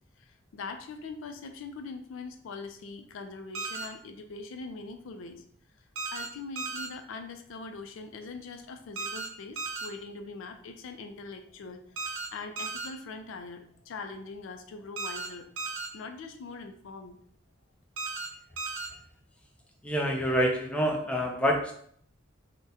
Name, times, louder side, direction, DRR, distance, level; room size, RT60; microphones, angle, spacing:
voice 1, 0.2-5.4 6.1-15.5 15.9-17.2, left 4 dB, 80° left, 6 dB, 0.4 m, -42 dB
sound 1, 3.6-3.9 6.0-6.3 6.6-6.9 9.0-9.3 9.6-9.9 12.0-12.3 12.6-12.9 15.0-15.3 15.6-15.9 18.0-18.3 18.6-18.9, right 4 dB, 80° right, 0.6 m, -35 dB
voice 2, 19.8-21.7, equal, 5° left, 1 dB, 0.4 m, -27 dB
3.5 x 2.1 x 2.7 m, 0.62 s
head